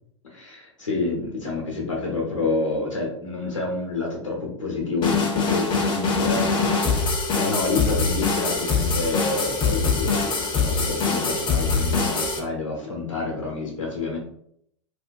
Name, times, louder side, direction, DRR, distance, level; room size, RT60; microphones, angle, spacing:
voice 1, 0.2-14.2, left 3 dB, 90° left, -2 dB, 0.8 m, -28 dB
sound 1, 5.0-12.4, left 4 dB, 30° left, 0.6 m, -23 dB
2.4 x 2.2 x 2.5 m, 0.70 s
figure-of-eight pair, 90°, 16 cm